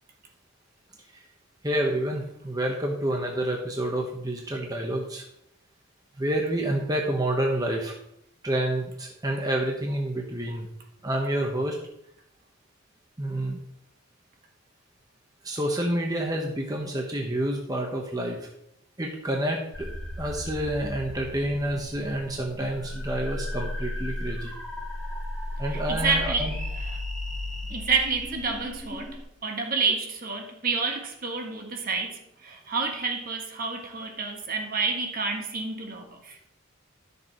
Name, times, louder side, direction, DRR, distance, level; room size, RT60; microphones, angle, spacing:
voice 1, 1.6-5.2 6.2-8.0 8.4-10.7 11.0-11.8 13.2-13.6 15.4-18.5 19.0-24.5 25.6-26.6, right 1 dB, 20° right, 0 dB, 1.1 m, -28 dB
sound 1, 19.7-29.2, left 1 dB, ahead, 1.9 m, -35 dB
voice 2, 25.7-26.5 27.7-36.4, right 4 dB, 45° right, 3 dB, 1.5 m, -29 dB
12.0 x 6.8 x 4.5 m, 0.76 s
head